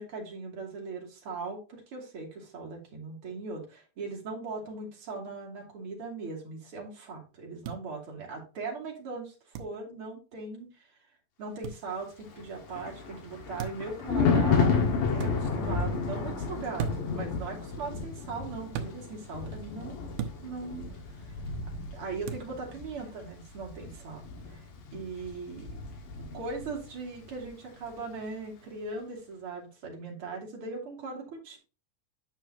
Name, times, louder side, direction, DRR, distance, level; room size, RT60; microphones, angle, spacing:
voice 1, 0.0-10.9 11.4-14.8 15.1-20.1 20.4-21.4 21.9-24.6 24.9-25.8 26.2-31.6, right 4 dB, 40° right, 0 dB, 3.1 m, -39 dB
sound 1, 7.6-7.8 9.5-9.7 11.6-11.8 13.6-13.9 15.2-15.3 16.8-17.2 18.7-18.9 20.2-20.4 22.3-22.5, right 7 dB, 90° right, 2.6 m, -35 dB
Thunder, 12.3-26.9 27.2-27.5, left 5 dB, 70° left, 3.2 m, -32 dB
9.6 x 6.0 x 2.8 m, 0.32 s
omnidirectional pair, 4.0 m